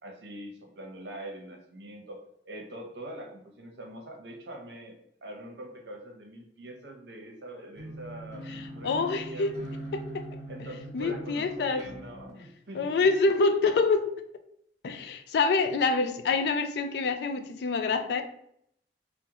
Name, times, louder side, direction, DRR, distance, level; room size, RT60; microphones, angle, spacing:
voice 1, 0.0-9.5 10.5-13.5, right 1 dB, 70° right, 1 dB, 0.7 m, -44 dB
sound 1, 7.7-12.3, right 1 dB, 40° right, 0.8 m, -41 dB
voice 2, 8.5-9.5 9.9-10.4 10.9-11.9 12.8-14.1 14.8-18.2, left 4 dB, 65° left, 7 dB, 0.3 m, -26 dB
3.5 x 2.1 x 2.8 m, 0.72 s
head